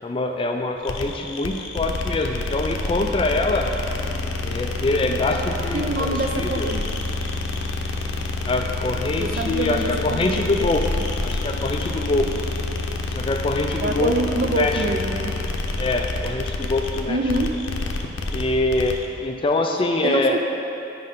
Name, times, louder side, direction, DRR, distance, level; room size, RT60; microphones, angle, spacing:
voice 1, 0.0-3.7 4.4-6.7 8.5-10.8 11.2-12.3 13.2-14.8 15.8-17.2 18.3-20.4, left 2 dB, 30° left, 3 dB, 0.3 m, -24 dB
sound 1, 0.8-19.0, left 2 dB, 90° left, 0.6 m, -28 dB
voice 2, 5.7-6.8 9.2-10.4 13.8-15.3 17.1-17.6 20.0-20.4, right 2 dB, 50° right, 4 dB, 0.4 m, -25 dB
9.5 x 5.2 x 3.8 m, 2.9 s
head